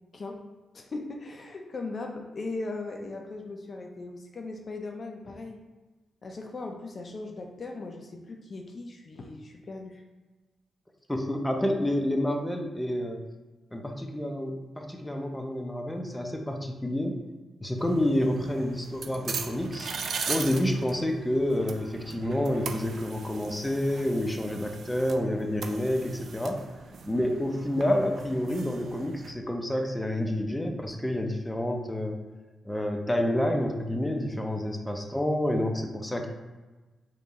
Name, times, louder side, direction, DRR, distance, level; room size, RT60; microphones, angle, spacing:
voice 1, 0.7-5.6 6.2-10.0, left 3 dB, 50° left, 2 dB, 0.5 m, -38 dB
voice 2, 11.1-13.2 13.7-17.2 17.6-19.9 20.3-26.6 27.0-32.2 32.6-36.3, left 1 dB, 10° left, 3 dB, 0.7 m, -29 dB
sound 1, 17.8-29.3, right 5 dB, 70° right, 0.4 m, -39 dB
3.5 x 2.8 x 4.1 m, 1.2 s
supercardioid pair, 50°, 0 cm